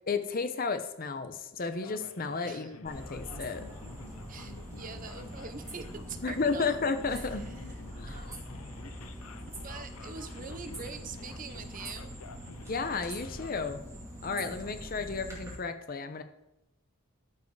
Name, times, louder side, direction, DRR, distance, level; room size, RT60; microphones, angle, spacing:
voice 1, 0.1-3.6 6.2-7.5 8.0-8.3 12.7-13.8 14.2-16.2, left 4 dB, 40° left, 9 dB, 0.7 m, -33 dB
Male speech man speaking, 1.7-13.7, left 5 dB, 90° left, 0.6 m, -51 dB
voice 2, 2.4-2.8 4.3-6.8 7.1-7.5 8.1-8.5 9.6-12.1, right 5 dB, 40° right, 9 dB, 0.7 m, -44 dB
sound 1, 2.9-15.5, equal, 15° right, 2.4 m, -43 dB
13.5 x 4.8 x 4.8 m, 0.91 s
head